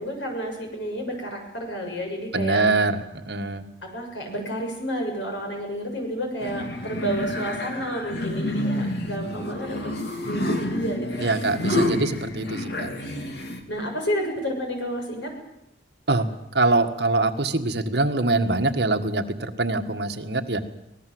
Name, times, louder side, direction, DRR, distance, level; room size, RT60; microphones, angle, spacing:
voice 1, 0.0-2.6 3.8-9.9 10.3-11.4 13.7-15.3, equal, 85° left, 2 dB, 7.1 m, -30 dB
voice 2, 2.3-3.6 11.2-12.9 16.1-16.3 16.5-20.6, right 2 dB, 65° right, 6 dB, 1.7 m, -24 dB
sound 1, 6.4-13.6, left 1 dB, 65° left, 2.7 m, -29 dB
24.5 x 19.0 x 7.9 m, 0.87 s
head